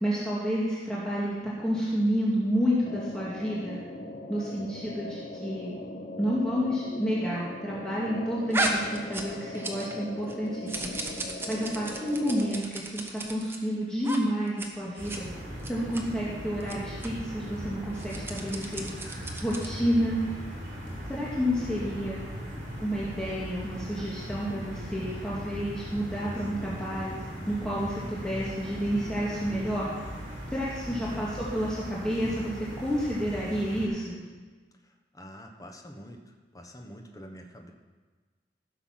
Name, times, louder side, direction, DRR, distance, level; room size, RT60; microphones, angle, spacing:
voice 1, 0.0-3.8 4.3-5.7 6.2-10.9 11.5-12.6 12.9-15.2 15.7-18.9 19.4-20.2 21.1-22.2 22.8-27.2 27.5-29.9 30.5-34.2, equal, 5° left, -8 dB, 1.9 m, -30 dB
sound 1, 2.8-12.6, left 1 dB, 45° left, 1.1 m, -40 dB
sound 2, 8.5-10.0 10.3-13.6 14.0-14.2 14.5-14.7 15.0-15.2 15.6-16.0 16.6-16.7 17.0-17.1 17.9-19.8, right 2 dB, 15° right, 1.2 m, -34 dB
sound 3, 15.0-33.9, equal, 50° right, 4.2 m, -39 dB
voice 2, 30.8-31.3 35.1-36.2 36.5-37.7, equal, 20° left, 3 dB, 1.2 m, -46 dB
15.5 x 7.0 x 5.9 m, 1.4 s
head